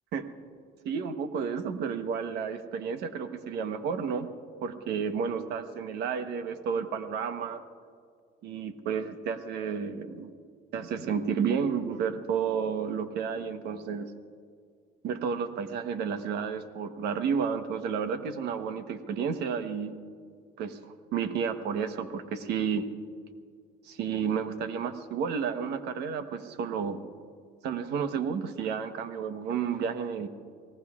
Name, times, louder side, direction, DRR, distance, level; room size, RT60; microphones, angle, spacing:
voice 1, 0.8-4.3 4.6-7.6 8.4-10.3 10.7-14.1 15.0-20.0 20.6-22.8 23.8-27.1 27.6-30.3, right 6 dB, 80° right, 9 dB, 1.1 m, -31 dB
30.0 x 18.5 x 2.4 m, 2.2 s
cardioid pair, 110°, 17 cm